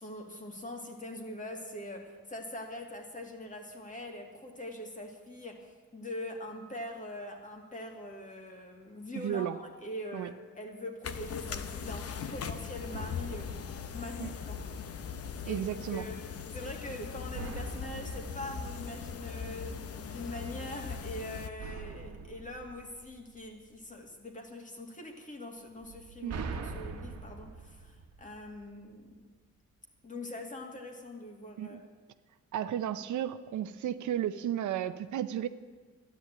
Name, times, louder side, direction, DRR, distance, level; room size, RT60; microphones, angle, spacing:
voice 1, 0.0-14.6 15.5-15.6 15.9-16.2 16.5-29.1 30.0-31.8, left 1 dB, 25° left, 2 dB, 2.4 m, -43 dB
voice 2, 9.1-9.6 10.1-10.3 14.2-14.3 15.4-16.1 26.2-26.5 31.6-31.8 32.5-35.5, right 10 dB, 80° right, 11 dB, 0.8 m, -33 dB
sound 1, 11.0-21.5, left 6 dB, 55° left, 1.0 m, -40 dB
sound 2, 12.9-14.8 17.3-19.8 21.6-23.8 25.8-28.9, right 4 dB, 55° right, 1.4 m, -44 dB
13.0 x 10.5 x 8.7 m, 1.4 s
cardioid pair, 115°, 29 cm